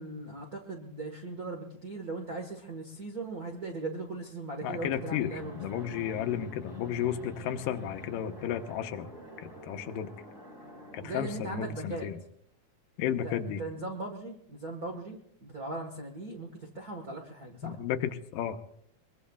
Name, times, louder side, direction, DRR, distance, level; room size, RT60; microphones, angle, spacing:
voice 1, 0.0-5.9 11.0-12.1 13.1-16.5 16.7-17.8, right 2 dB, 55° right, 1 dB, 1.0 m, -39 dB
voice 2, 4.6-9.1 9.4-10.1 10.9-12.2 13.0-13.6 17.6-18.6, left 10 dB, 80° left, 8 dB, 2.4 m, -33 dB
Fixed-wing aircraft airplane, 4.7-11.8, left 1 dB, 20° right, 2.6 m, -46 dB
23.0 x 22.5 x 2.3 m, 0.69 s
omnidirectional pair, 3.9 m